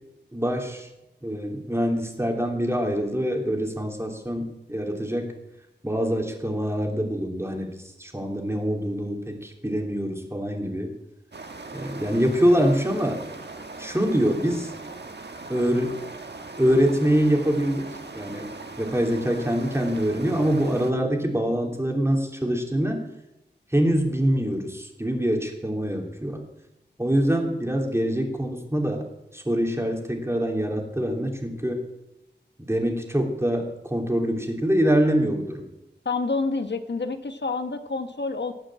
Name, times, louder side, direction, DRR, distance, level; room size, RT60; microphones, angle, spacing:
voice 1, 0.3-0.9 1.2-5.3 5.8-7.7 8.0-10.9 11.7-13.2 13.8-14.7 15.5-16.0 16.6-17.8 18.1-18.5 18.8-23.0 23.7-26.4 27.0-29.0 29.3-31.8 32.6-35.6, equal, 15° right, 1 dB, 3.0 m, -24 dB
sound 1, 11.3-20.9, right 3 dB, 65° right, 1.5 m, -40 dB
voice 2, 36.0-38.5, left 3 dB, 75° left, 8 dB, 1.2 m, -28 dB
18.5 x 6.4 x 8.7 m, 0.91 s
wide cardioid pair, 70°, 18 cm